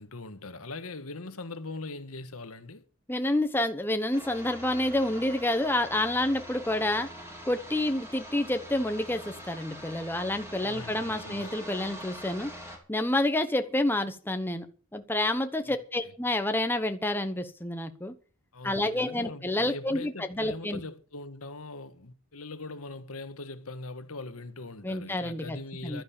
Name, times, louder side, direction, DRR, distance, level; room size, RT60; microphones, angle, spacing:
voice 1, 0.0-2.8 10.6-11.6 15.6-16.1 18.5-26.0, left 3 dB, 85° left, 1.5 m, -41 dB
voice 2, 3.1-7.1 7.4-12.5 12.9-14.7 14.9-18.1 18.6-20.8 24.8-25.6 25.8-26.0, left 1 dB, 10° left, 1.0 m, -28 dB
sound 1, 4.1-12.8, equal, 10° right, 4.0 m, -44 dB
12.0 x 10.5 x 7.2 m
head